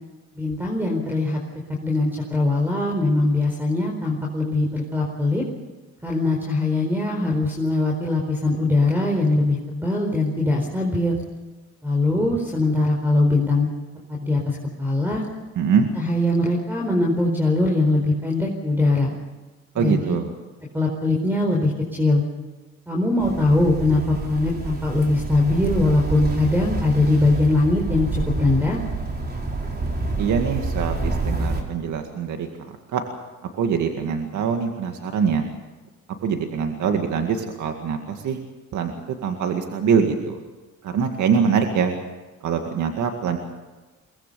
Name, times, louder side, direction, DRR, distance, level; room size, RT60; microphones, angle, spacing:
voice 1, 0.3-1.4 1.8-5.4 6.0-11.2 11.8-13.7 14.1-15.2 16.0-19.1 19.7-20.0 20.7-22.2 22.9-28.8, left 2 dB, 5° right, 0 dB, 4.5 m, -21 dB
voice 2, 15.6-15.9 19.8-20.3 30.2-33.0 33.5-35.5 36.2-38.4 38.7-38.9 39.2-40.4 40.8-42.0 42.4-43.4, right 6 dB, 75° right, 4 dB, 2.1 m, -23 dB
sound 1, 23.2-31.6, right 3 dB, 30° right, 4.5 m, -28 dB
23.5 x 19.5 x 6.9 m, 1.2 s
cardioid pair, 90°, 30 cm